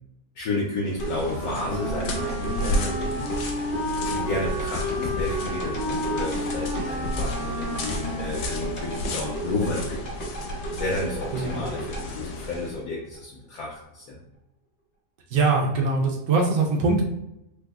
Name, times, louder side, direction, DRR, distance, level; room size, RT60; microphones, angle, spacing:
voice 1, 0.3-3.7 4.0-14.2, left 2 dB, 70° left, -3 dB, 1.0 m, -32 dB
sound 1, 0.9-12.8, left 1 dB, 90° left, 1.2 m, -34 dB
sound 2, 1.0-13.2 13.6-13.7, right 1 dB, 40° left, 0.8 m, -34 dB
Wind instrument woodwind instrument, 1.2-9.4, equal, 85° right, 1.5 m, -32 dB
voice 2, 15.3-17.0, right 3 dB, 65° right, 0 dB, 0.8 m, -22 dB
3.3 x 2.0 x 3.4 m, 0.86 s
omnidirectional pair, 1.7 m